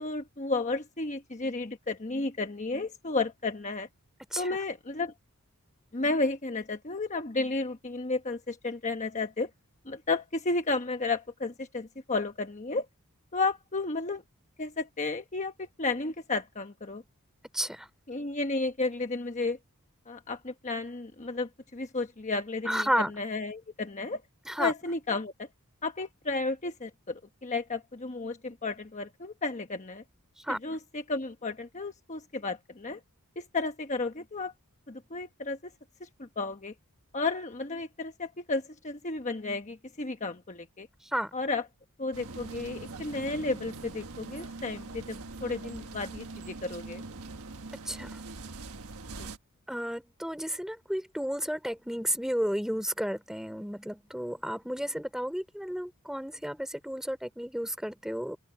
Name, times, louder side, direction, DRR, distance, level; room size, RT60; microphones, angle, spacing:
voice 1, 0.0-3.9 4.4-5.1 5.9-9.5 9.8-12.9 13.3-14.2 14.6-17.0 18.1-19.6 20.1-24.2 24.6-25.5 25.8-30.0 30.5-33.0 33.4-34.5 34.9-35.7 36.0-36.7 37.1-40.9 41.3-41.6 42.0-47.0 49.2-49.3, left 3 dB, 35° left, 1.1 m, -33 dB
voice 2, 17.5-17.9 22.7-23.1 24.5-24.7 30.4-30.6 41.1-41.3 47.8-48.2 49.7-58.4, equal, ahead, 3.1 m, -32 dB
sound 1, 42.1-49.4, right 3 dB, 80° right, 1.4 m, -42 dB
open air
head